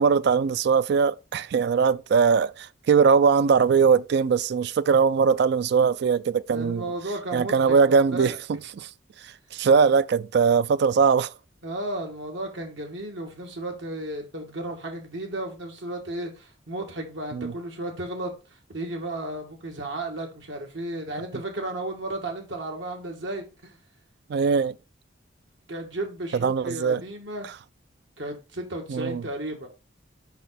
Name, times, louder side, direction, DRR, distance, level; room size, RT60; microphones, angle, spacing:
voice 1, 0.0-6.8 7.3-8.9 9.5-11.3 17.3-17.5 24.3-24.7 26.4-27.0 28.9-29.2, right 6 dB, 60° right, 0.3 m, -21 dB
voice 2, 6.5-8.4 11.6-23.8 25.7-27.5 28.2-29.7, right 1 dB, 80° right, 2.2 m, -34 dB
5.6 x 5.3 x 4.2 m
head